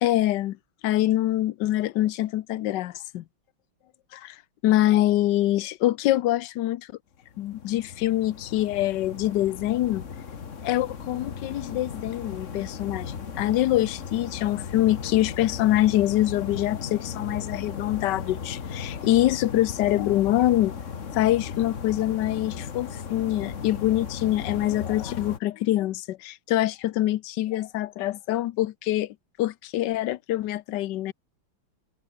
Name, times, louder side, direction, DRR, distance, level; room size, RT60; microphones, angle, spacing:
voice 1, 0.0-0.6 0.8-3.2 4.1-4.4 4.6-6.9 7.4-10.0 10.6-20.7 21.1-31.1, left 14 dB, 65° left, 1.2 m, -25 dB
sound 1, 7.2-25.4, left 6 dB, 40° left, 1.6 m, -36 dB
omnidirectional pair, 2.3 m